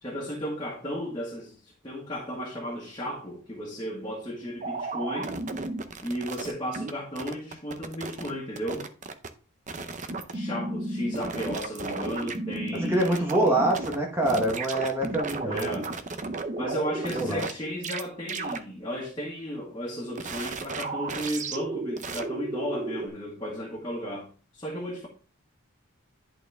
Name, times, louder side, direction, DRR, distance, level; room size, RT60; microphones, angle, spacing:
voice 1, 0.0-5.3 6.0-8.9 10.3-13.7 15.5-15.9 16.6-25.1, equal, 20° left, 1.7 m, -34 dB
sound 1, 4.6-6.9 7.2-8.3 8.6-9.3 9.7-14.0 14.2-17.5 17.8-18.0 18.3-18.6 20.1-23.1, right 3 dB, 35° right, 0.7 m, -33 dB
voice 2, 12.7-15.7 17.1-17.5, right 1 dB, 10° right, 1.2 m, -25 dB
11.0 x 4.3 x 3.5 m
head